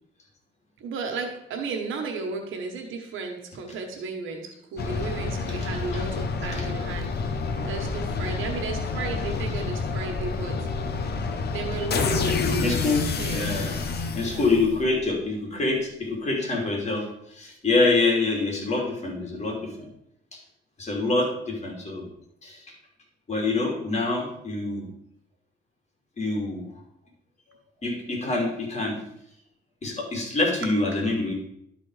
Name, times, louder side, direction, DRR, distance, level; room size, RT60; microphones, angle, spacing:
voice 1, 0.8-7.1 7.7-10.6 11.5-13.5 14.2-14.5 23.5-23.9, right 4 dB, 80° right, 3 dB, 1.3 m, -34 dB
sound 1, 4.8-15.0, left 4 dB, 55° left, 1.1 m, -28 dB
voice 2, 12.6-13.1 13.3-13.8 14.1-19.7 20.3-20.4 20.8-22.0 22.4-22.6 23.3-24.9 26.2-26.7 27.8-29.0 29.8-31.3, left 3 dB, 35° left, -1 dB, 3.1 m, -26 dB
12.0 x 4.2 x 4.8 m, 0.75 s
cardioid pair, 90°, 20 cm